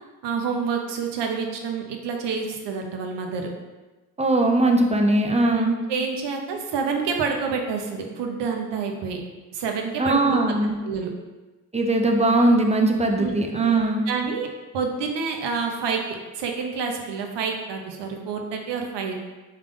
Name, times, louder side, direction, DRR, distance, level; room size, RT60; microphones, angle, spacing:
voice 1, 0.2-3.5 5.4-9.2 9.5-10.4 10.8-11.1 13.2-13.3 13.6-14.5 14.7-16.0 16.3-19.2, right 5 dB, 75° right, 2 dB, 0.7 m, -28 dB
voice 2, 4.2-5.8 10.0-10.8 11.7-14.0, right 2 dB, 15° right, 3 dB, 0.5 m, -20 dB
3.7 x 2.3 x 3.5 m, 1.2 s
supercardioid pair, 50°, 42 cm